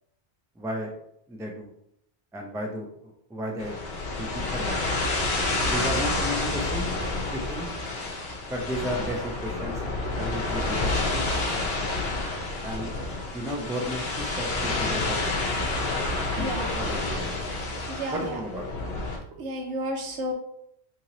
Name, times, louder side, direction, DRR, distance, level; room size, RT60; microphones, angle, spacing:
voice 1, 0.6-0.9 1.3-1.7 2.3-3.8 4.1-5.0 5.6-6.9 7.3-7.7 8.5-9.8 10.1-11.7 12.6-12.9 13.3-15.3 16.3-17.3 18.1-18.7, equal, 5° right, 0 dB, 0.3 m, -34 dB
sound 1, 3.6-19.2, left 2 dB, 70° left, 1.0 m, -29 dB
voice 2, 16.4-16.7 17.9-18.4 19.4-20.3, right 1 dB, 80° right, 1 dB, 1.1 m, -31 dB
2.9 x 2.9 x 3.8 m, 0.75 s
omnidirectional pair, 1.1 m